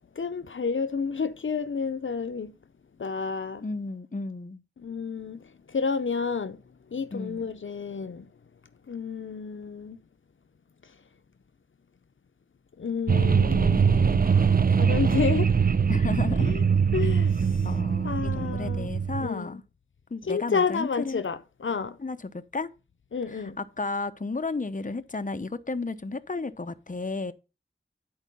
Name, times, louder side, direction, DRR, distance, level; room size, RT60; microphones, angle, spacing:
voice 1, 0.2-2.5 3.0-3.6 4.8-6.6 6.9-8.3 8.9-10.0 12.8-15.5 16.5-16.6 16.9-17.6 18.0-18.9 19.2-19.6 20.3-22.0 23.1-23.6, left 5 dB, 75° left, 0.6 m, -30 dB
voice 2, 3.6-4.6 7.1-7.5 15.9-16.5 17.6-19.6 20.1-21.2 22.0-22.7 23.3-27.3, left 3 dB, 40° left, 0.8 m, -33 dB
sound 1, 13.1-19.3, right 6 dB, 45° right, 0.5 m, -22 dB
10.5 x 4.6 x 5.3 m
wide cardioid pair, 40°, 20 cm